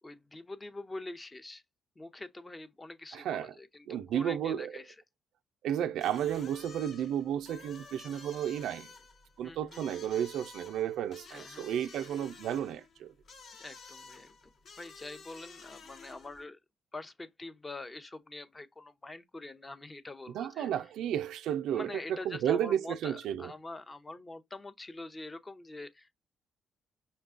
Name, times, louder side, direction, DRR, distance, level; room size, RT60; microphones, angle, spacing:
voice 1, 0.0-1.6 2.0-5.0 7.0-7.1 9.4-9.9 11.3-11.7 13.6-14.5 14.8-16.6 16.9-20.7 21.7-26.1, left 2 dB, 20° left, 0.6 m, -45 dB
voice 2, 3.1-3.5 3.9-4.7 5.6-8.9 9.4-13.1 20.3-23.5, right 10 dB, 80° right, 0.3 m, -32 dB
sound 1, 6.0-16.4, left 4 dB, 55° left, 1.0 m, -52 dB
5.5 x 2.2 x 2.4 m
cardioid pair, 90°, 0 cm